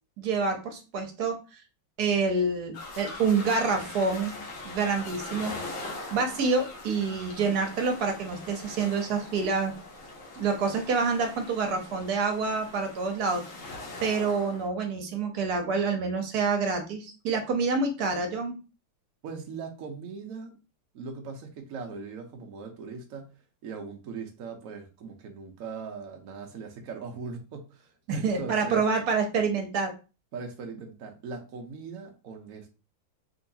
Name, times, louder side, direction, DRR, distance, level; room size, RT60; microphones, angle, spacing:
voice 1, 0.2-1.6 2.0-4.3 4.6-5.5 6.1-9.7 10.4-13.4 14.0-18.6 28.1-29.9, right 4 dB, 60° right, 4 dB, 1.1 m, -27 dB
Sea and Seagull wave, 2.7-14.7, left 2 dB, 70° left, 1.7 m, -42 dB
voice 2, 19.2-20.6 20.9-23.3 23.6-28.8 30.3-32.7, right 5 dB, 90° right, 3 dB, 0.7 m, -40 dB
3.8 x 3.0 x 2.6 m, 0.31 s
omnidirectional pair, 2.3 m